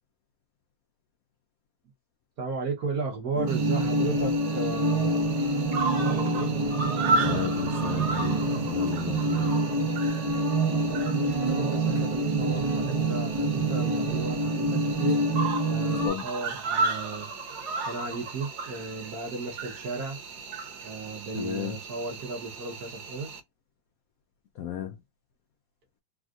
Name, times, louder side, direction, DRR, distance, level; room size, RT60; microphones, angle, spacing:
voice 1, 2.4-5.2 6.1-6.5 10.9-15.2 15.7-17.3 17.8-20.2 20.8-23.3, right 3 dB, 55° right, 1.4 m, -35 dB
sound 1, 3.3-16.1, right 2 dB, 25° right, 1.0 m, -26 dB
Cricket, 3.5-23.4, right 3 dB, 75° right, 1.6 m, -35 dB
voice 2, 7.2-9.6 16.0-16.2 21.4-21.8 24.6-25.0, left 10 dB, 85° left, 0.7 m, -34 dB
3.5 x 2.4 x 2.4 m
omnidirectional pair, 2.1 m